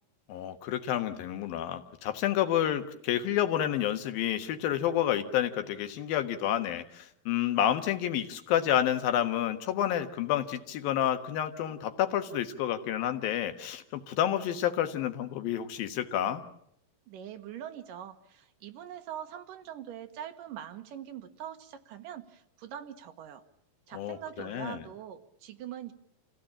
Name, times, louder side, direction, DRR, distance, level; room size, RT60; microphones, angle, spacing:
voice 1, 0.3-16.4 23.9-24.8, left 11 dB, 80° left, 7 dB, 3.1 m, -29 dB
voice 2, 17.1-23.4 23.9-25.9, right 10 dB, 70° right, 7 dB, 2.8 m, -43 dB
27.0 x 16.5 x 8.7 m, 0.73 s
omnidirectional pair, 4.1 m